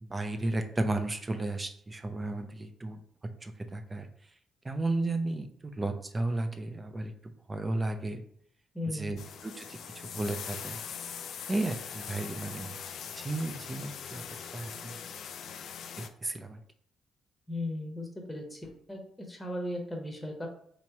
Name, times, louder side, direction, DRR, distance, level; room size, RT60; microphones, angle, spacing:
voice 1, 0.0-3.0 3.4-4.1 4.6-7.1 7.5-8.2 8.8-10.8 11.5-12.8 13.1-14.2 14.5-15.0 16.2-16.6, right 2 dB, 20° right, 7 dB, 0.5 m, -33 dB
voice 2, 8.7-9.2 17.5-20.5, left 1 dB, 10° left, 2 dB, 0.9 m, -37 dB
sound 1, 9.2-16.1, left 7 dB, 65° left, 0.3 m, -42 dB
3.0 x 2.9 x 4.5 m, 0.65 s
cardioid pair, 105°, 0 cm